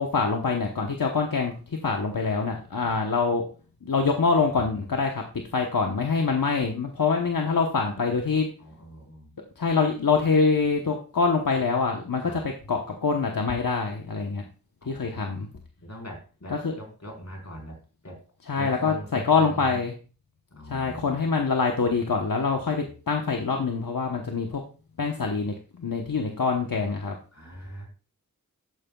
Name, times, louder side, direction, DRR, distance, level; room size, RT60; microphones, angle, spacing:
voice 1, 0.0-1.5 1.8-3.4 3.8-5.2 5.5-8.5 9.6-14.4 14.9-15.5 16.5-16.7 18.5-19.9 20.7-24.6 25.0-27.2, left 4 dB, 75° left, 2 dB, 1.1 m, -25 dB
voice 2, 8.6-9.4 12.1-12.4 14.8-15.3 15.8-17.8 18.0-18.2 18.6-19.8 20.5-21.4 27.3-27.9, equal, 50° left, 0 dB, 4.3 m, -42 dB
12.5 x 9.1 x 2.3 m, 0.36 s
wide cardioid pair, 50°, 34 cm